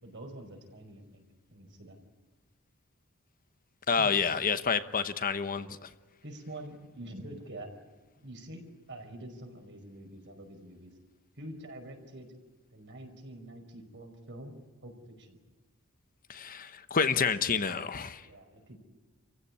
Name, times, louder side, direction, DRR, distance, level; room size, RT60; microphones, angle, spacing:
voice 1, 0.0-1.2 1.5-2.0 4.0-4.1 4.4-4.5 6.2-7.7 8.2-10.9 11.4-12.3 12.7-15.4 18.2-18.8, right 1 dB, 55° right, 5.1 m, -46 dB
voice 2, 3.9-5.9 16.3-18.2, left 6 dB, 40° left, 1.0 m, -29 dB
29.0 x 16.0 x 9.8 m
head